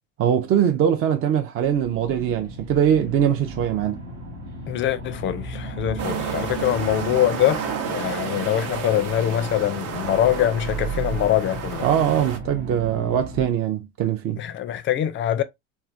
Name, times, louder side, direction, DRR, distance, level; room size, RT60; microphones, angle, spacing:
voice 1, 0.2-4.0 11.8-14.4, right 9 dB, 40° right, 0.4 m, -22 dB
sound 1, 1.6-13.5, right 3 dB, 75° right, 1.1 m, -35 dB
voice 2, 4.7-11.9 14.4-15.4, left 11 dB, 35° left, 0.4 m, -23 dB
sound 2, 6.0-12.4, right 6 dB, 55° right, 0.8 m, -32 dB
3.2 x 2.1 x 2.4 m
hypercardioid pair, 70°, 37 cm